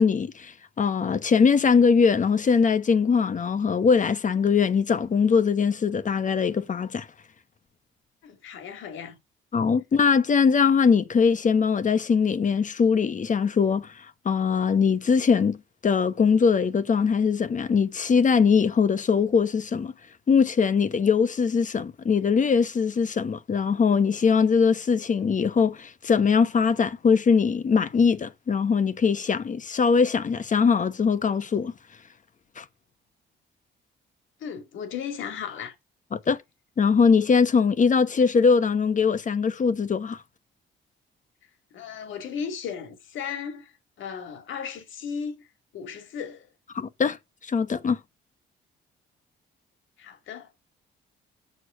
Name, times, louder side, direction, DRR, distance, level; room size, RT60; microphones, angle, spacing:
voice 1, 0.0-7.1 9.5-15.6 15.8-19.9 20.3-31.7 32.6-32.7 36.1-36.4 36.8-40.2 46.7-47.2 47.4-48.0, left 5 dB, 40° left, 1.0 m, -21 dB
voice 2, 8.2-9.2 34.4-35.8 41.7-43.7 44.0-45.5 45.7-46.5 50.0-50.5, left 7 dB, 80° left, 2.5 m, -35 dB
6.6 x 6.4 x 6.4 m
cardioid pair, 90°, 20 cm